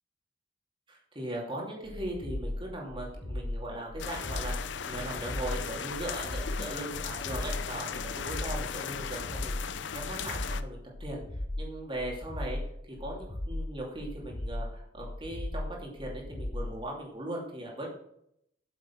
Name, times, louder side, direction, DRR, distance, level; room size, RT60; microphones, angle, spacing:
voice 1, 0.9-11.2 11.6-12.6 12.9-17.9, right 1 dB, 30° right, -1 dB, 2.8 m, -39 dB
sound 1, 1.9-16.8, left 1 dB, 30° left, 0.8 m, -37 dB
sound 2, 4.0-10.6, left 7 dB, 75° left, 0.6 m, -37 dB
8.3 x 7.3 x 5.9 m, 0.74 s
head